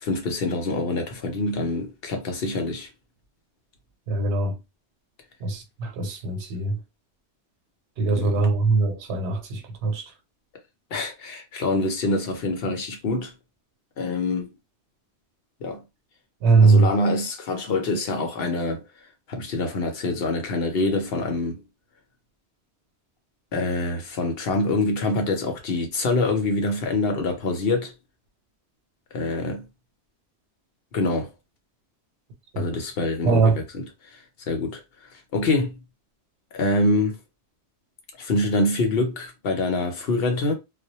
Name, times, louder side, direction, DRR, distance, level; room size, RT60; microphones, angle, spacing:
voice 1, 0.0-2.9 8.2-8.4 10.9-13.3 14.0-14.5 15.6-15.8 16.6-18.8 19.3-21.6 23.5-27.9 29.1-29.6 30.9-31.3 32.6-33.8 34.1-34.2 34.5-34.8 35.3-35.8 36.5-37.2 38.2-40.5, left 2 dB, 65° left, 0.8 m, -25 dB
voice 2, 4.1-4.6 5.4-6.8 8.0-10.1 16.4-16.9 32.5-32.6 33.2-33.6, right 3 dB, 85° right, 1.0 m, -21 dB
2.2 x 2.0 x 2.8 m
omnidirectional pair, 1.1 m